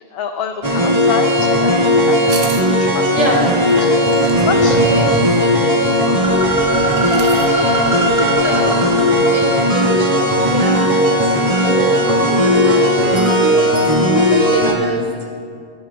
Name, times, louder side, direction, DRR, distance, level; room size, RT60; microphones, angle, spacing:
voice 1, 0.1-3.1 4.1-4.8 13.6-13.8, left 7 dB, 70° left, 6 dB, 0.8 m, -27 dB
sound 1, 0.6-14.7, equal, 35° right, 1.7 m, -15 dB
sound 2, 2.3-2.7 4.1-4.4 6.9-7.6 9.1-9.2 9.4-9.5 9.8-9.9 10.4-10.8 11.1-11.2, right 5 dB, 85° right, 1.0 m, -32 dB
voice 2, 3.1-6.5 7.8-15.0, right 1 dB, 55° right, -3 dB, 2.7 m, -27 dB
20.5 x 12.0 x 2.3 m, 2.3 s
omnidirectional pair, 1.0 m